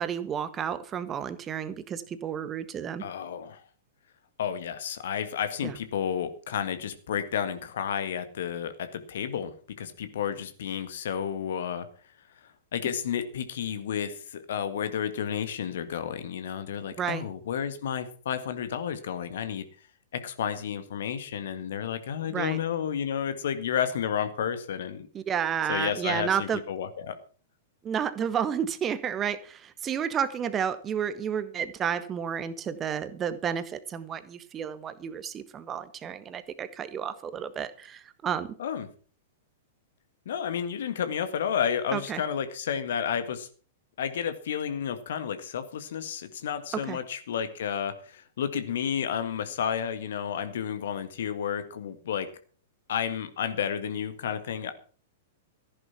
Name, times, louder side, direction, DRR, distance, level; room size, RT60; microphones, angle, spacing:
voice 1, 0.0-3.0 5.6-5.7 17.0-17.2 22.2-22.6 25.1-26.6 27.8-38.5 41.9-42.2 46.7-47.0, right 8 dB, 20° right, 13 dB, 1.4 m, -31 dB
voice 2, 3.0-3.6 4.4-11.9 12.4-19.6 20.1-25.1 25.7-27.2 38.6-38.9 40.3-43.5 44.0-52.3 52.9-54.7, left 8 dB, 55° left, 10 dB, 1.8 m, -31 dB
14.5 x 11.0 x 5.9 m, 0.41 s
figure-of-eight pair, 100°, 0 cm